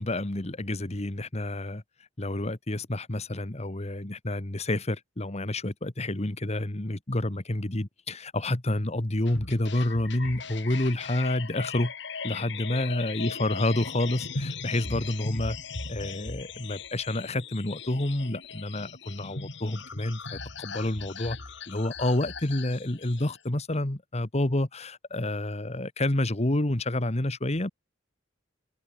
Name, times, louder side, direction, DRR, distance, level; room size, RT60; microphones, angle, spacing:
voice 1, 0.0-1.8 2.2-11.9 12.2-15.6 15.9-21.4 21.7-27.7, left 1 dB, 35° left, 1.5 m, -29 dB
sound 1, 9.3-23.4, left 4 dB, 65° left, 3.7 m, -38 dB
head